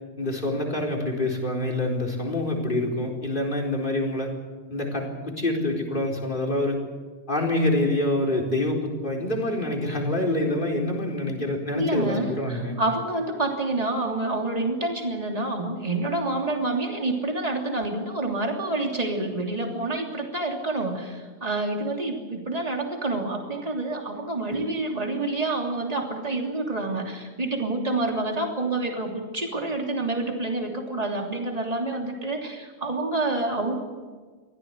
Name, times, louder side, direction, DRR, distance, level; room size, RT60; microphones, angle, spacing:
voice 1, 0.2-4.3 4.7-6.8 7.3-12.8, left 1 dB, 50° left, 1 dB, 4.6 m, -26 dB
voice 2, 11.7-33.8, right 2 dB, 35° right, 2 dB, 3.2 m, -28 dB
24.5 x 16.0 x 8.1 m, 1.4 s
omnidirectional pair, 1.1 m